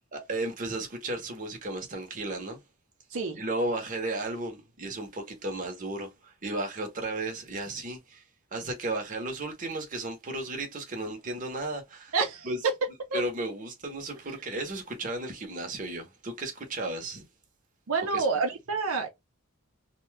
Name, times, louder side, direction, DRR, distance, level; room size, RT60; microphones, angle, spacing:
voice 1, 0.1-2.6 3.4-8.2 8.5-12.1 12.4-12.6 13.1-17.2 18.1-18.3, right 2 dB, 40° right, 0.9 m, -34 dB
voice 2, 3.1-3.4 12.1-12.5 13.1-13.2 17.9-19.1, right 4 dB, 75° right, 0.7 m, -28 dB
2.7 x 2.2 x 3.2 m
head